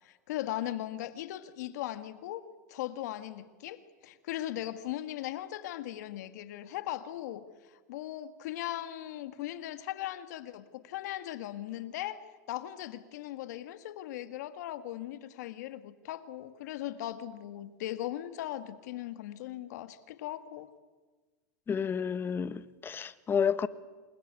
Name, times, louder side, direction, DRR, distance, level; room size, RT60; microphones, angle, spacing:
voice 1, 0.0-20.7, left 13 dB, 75° left, 1.9 m, -39 dB
voice 2, 21.7-23.7, left 7 dB, 25° left, 1.3 m, -30 dB
27.5 x 21.5 x 8.5 m
supercardioid pair, 115°, 9 cm